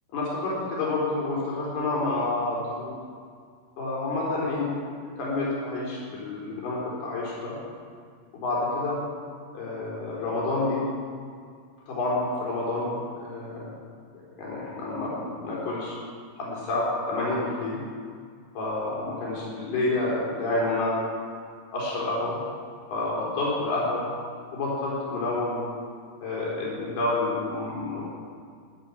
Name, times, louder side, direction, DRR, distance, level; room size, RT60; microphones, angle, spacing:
voice 1, 0.1-2.9 3.8-4.8 5.2-7.6 8.3-9.0 9.5-10.9 11.9-13.7 14.4-16.0 16.4-17.8 18.6-21.0 21.7-22.4 22.9-24.1 24.5-25.6 26.2-28.0, left 2 dB, 70° left, -5 dB, 6.0 m, -28 dB
13.5 x 11.5 x 7.1 m, 2.1 s
omnidirectional pair, 4.8 m